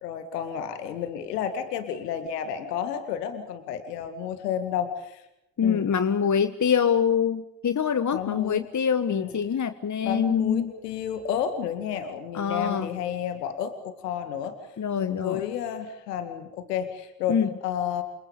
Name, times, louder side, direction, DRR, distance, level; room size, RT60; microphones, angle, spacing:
voice 1, 0.0-5.2 5.6-5.9 8.1-8.7 9.1-9.4 10.0-14.6 14.9-18.0, left 9 dB, 85° left, 8 dB, 2.2 m, -31 dB
voice 2, 5.6-10.7 12.3-12.9 14.8-15.4 17.3-17.5, left 7 dB, 40° left, 11 dB, 1.5 m, -25 dB
28.5 x 27.0 x 5.2 m, 0.82 s
figure-of-eight pair, 40°, 47 cm